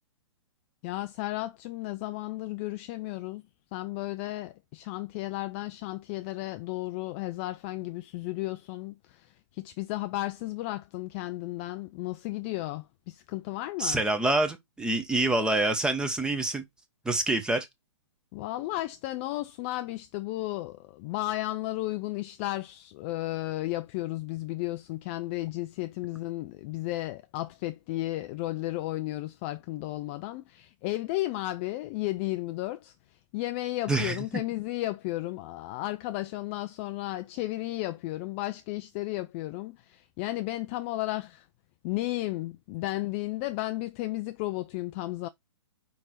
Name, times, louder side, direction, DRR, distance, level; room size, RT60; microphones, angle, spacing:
voice 1, 0.8-3.4 3.7-14.0 18.3-32.9 33.3-41.5 41.8-45.3, left 17 dB, 25° left, 0.3 m, -34 dB
voice 2, 13.8-16.6 17.0-17.7 33.9-34.4, right 2 dB, 5° right, 0.9 m, -26 dB
5.1 x 4.5 x 4.2 m
hypercardioid pair, 140°, 16 cm